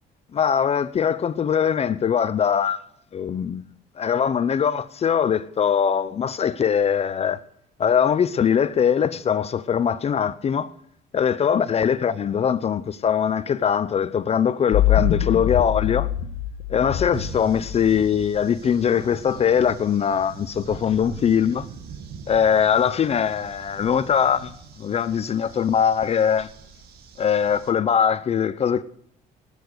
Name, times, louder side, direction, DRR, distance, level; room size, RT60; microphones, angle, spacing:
voice 1, 0.3-2.8 3.1-3.6 4.0-7.4 7.8-10.7 11.1-16.1 16.7-21.7 22.3-26.5 27.2-28.8, left 8 dB, 35° left, 0.6 m, -21 dB
sound 1, 14.7-18.2, left 11 dB, 85° left, 1.3 m, -24 dB
sound 2, 17.1-27.7, right 6 dB, 70° right, 2.1 m, -42 dB
18.0 x 8.1 x 6.6 m
cardioid pair, 110°, 17 cm